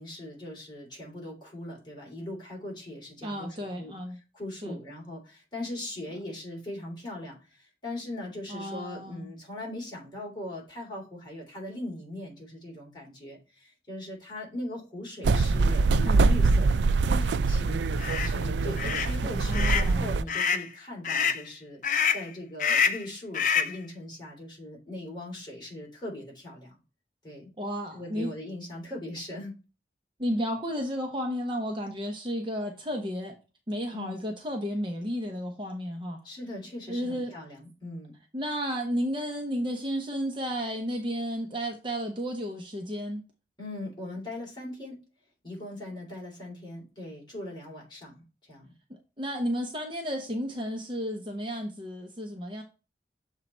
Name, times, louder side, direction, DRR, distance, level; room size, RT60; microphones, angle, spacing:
voice 1, 0.0-3.9 4.3-17.8 18.2-21.8 22.1-26.8 27.2-27.5 27.9-29.5 33.9-34.2 36.2-38.1 43.6-45.0 45.4-48.7, left 1 dB, 25° left, 3.2 m, -40 dB
voice 2, 3.2-4.2 4.6-4.8 8.5-9.3 16.0-16.2 19.2-20.1 27.6-28.3 30.2-33.4 33.7-36.2 36.9-37.3 38.3-43.2 49.2-52.6, equal, 25° right, 0.9 m, -32 dB
sound 1, 15.2-20.2, right 3 dB, 80° right, 0.4 m, -24 dB
sound 2, 18.0-18.3 18.8-19.1 19.5-19.9 20.3-20.7 21.0-21.4 21.8-22.3 22.6-23.1 23.3-23.8, left 7 dB, 45° left, 0.6 m, -26 dB
7.2 x 3.8 x 4.2 m
head